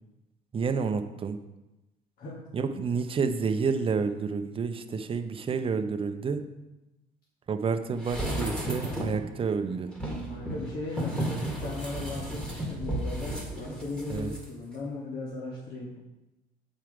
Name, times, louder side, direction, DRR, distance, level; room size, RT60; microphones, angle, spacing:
voice 1, 0.5-1.4 2.5-6.4 7.5-9.9 14.1-14.3, right 5 dB, 30° right, 8 dB, 0.6 m, -29 dB
sound 1, 8.0-9.3 9.9-14.4 14.7-14.8, right 1 dB, 5° left, 1.7 m, -33 dB
voice 2, 10.3-16.0, left 2 dB, 60° left, -5 dB, 1.5 m, -37 dB
7.7 x 4.6 x 4.9 m, 0.99 s
cardioid pair, 110°, 17 cm